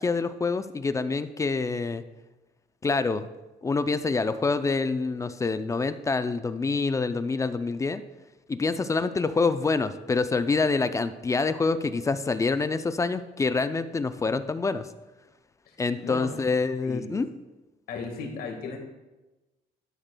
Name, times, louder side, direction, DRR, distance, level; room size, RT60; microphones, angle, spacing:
voice 1, 0.0-2.0 2.8-3.3 3.6-8.0 8.5-14.9 15.8-17.3, left 4 dB, 20° left, 11 dB, 0.3 m, -26 dB
voice 2, 16.0-16.5 16.8-17.2 17.9-18.8, left 4 dB, 60° left, 3 dB, 1.6 m, -36 dB
12.0 x 6.5 x 2.2 m, 1.1 s
cardioid pair, 110°, 17 cm